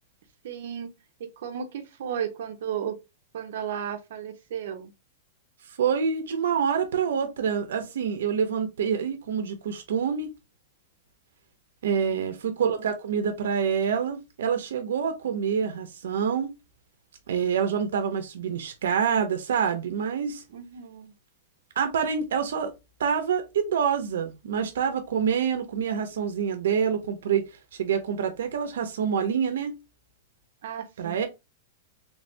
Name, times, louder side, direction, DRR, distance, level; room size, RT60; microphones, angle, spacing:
voice 1, 0.4-0.9 1.2-3.0 3.3-4.9 11.9-12.3 20.5-21.1 30.6-31.2, right 8 dB, 60° right, 0.8 m, -34 dB
voice 2, 5.8-10.3 11.8-16.5 17.3-20.4 21.8-22.7 23.0-27.5 27.8-29.8 31.0-31.3, right 7 dB, 90° right, 0.7 m, -26 dB
3.3 x 3.3 x 2.7 m
supercardioid pair, 170°, 0 cm